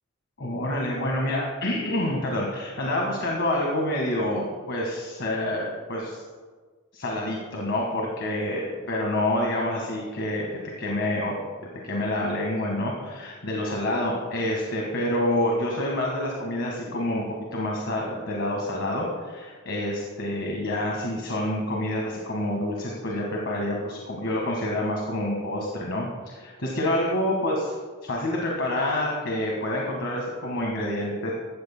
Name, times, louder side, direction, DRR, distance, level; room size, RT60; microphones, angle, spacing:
voice 1, 0.4-6.2 6.9-10.5 10.8-11.3 11.8-17.2 17.5-27.7 28.0-31.3, left 1 dB, 60° left, -1 dB, 1.6 m, -27 dB
15.5 x 13.0 x 2.2 m, 1.5 s
head